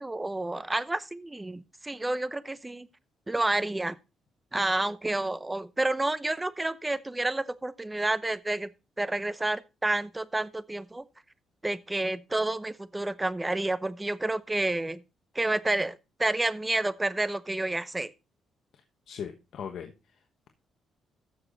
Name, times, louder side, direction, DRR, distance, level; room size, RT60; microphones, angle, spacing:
voice 1, 0.0-2.9 3.3-4.0 4.5-8.7 9.0-11.0 11.6-15.0 15.3-18.1, right 2 dB, 15° right, 0.7 m, -29 dB
voice 2, 18.7-20.2, left 7 dB, 65° left, 1.2 m, -40 dB
14.0 x 6.6 x 4.0 m
cardioid pair, 90°, 0 cm